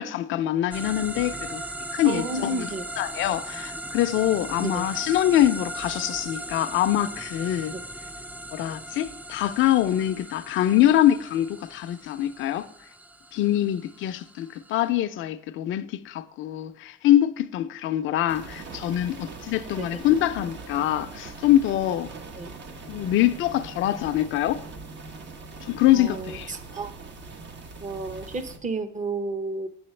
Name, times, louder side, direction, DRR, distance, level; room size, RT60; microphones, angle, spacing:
voice 1, 0.0-1.6 1.9-2.7 3.0-7.7 8.5-12.7 13.3-22.1 22.9-24.6 25.6-26.5, left 12 dB, 80° left, 0.5 m, -24 dB
sound 1, 0.7-14.9, right 1 dB, 10° right, 0.4 m, -38 dB
voice 2, 2.0-2.9 4.6-4.8 7.7-7.8 19.8-20.0 22.4-22.5 25.9-26.9 27.8-29.7, right 3 dB, 40° right, 0.9 m, -32 dB
sound 2, 18.3-28.6, right 3 dB, 65° right, 1.0 m, -41 dB
7.7 x 7.3 x 3.2 m
cardioid pair, 90°, 20 cm